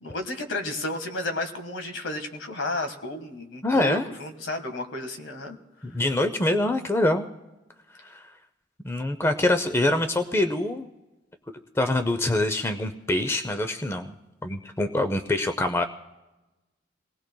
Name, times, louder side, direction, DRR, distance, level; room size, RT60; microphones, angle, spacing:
voice 1, 0.0-5.6 5.9-6.0, left 2 dB, 75° left, 7 dB, 1.6 m, -32 dB
voice 2, 3.6-4.1 5.8-7.3 8.0-8.3 8.8-10.9 11.7-14.2 14.4-15.8, left 1 dB, 15° left, 8 dB, 0.5 m, -25 dB
27.5 x 19.0 x 2.2 m, 1.1 s
head